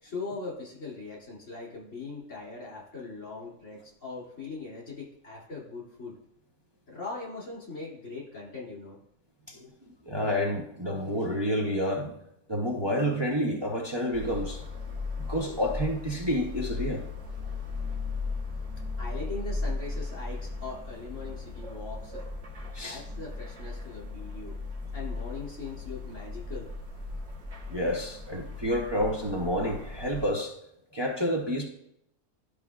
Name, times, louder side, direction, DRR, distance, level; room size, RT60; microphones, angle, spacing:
voice 1, 0.0-6.2 6.9-9.0 19.0-22.2 22.8-24.5 24.9-26.7, left 4 dB, 75° left, 3.1 m, -40 dB
voice 2, 10.1-12.1 12.5-14.6 15.2-17.0 22.7-23.0 27.7-30.5 30.9-31.6, equal, 25° right, 0.7 m, -29 dB
sound 1, 14.1-30.3, left 3 dB, 60° right, 1.6 m, -37 dB
12.5 x 4.9 x 2.4 m
omnidirectional pair, 1.3 m